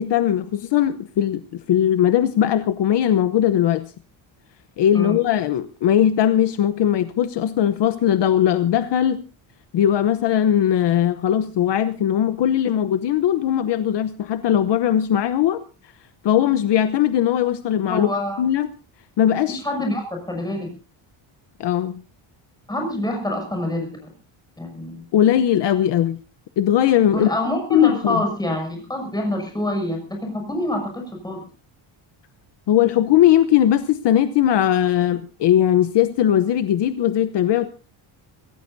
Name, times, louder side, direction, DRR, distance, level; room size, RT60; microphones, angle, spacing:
voice 1, 0.0-3.9 4.8-9.2 9.7-15.6 16.2-18.1 18.4-18.7 19.2-19.6 21.6-22.0 25.1-26.2 26.6-27.3 27.7-28.2 32.7-37.7, left 10 dB, 55° left, 11 dB, 1.0 m, -19 dB
voice 2, 17.9-18.4 19.5-20.7 22.7-24.1 24.6-25.0 27.1-31.4, left 1 dB, 10° left, 2 dB, 6.9 m, -26 dB
25.5 x 16.5 x 2.7 m, 0.34 s
cardioid pair, 175°, 49 cm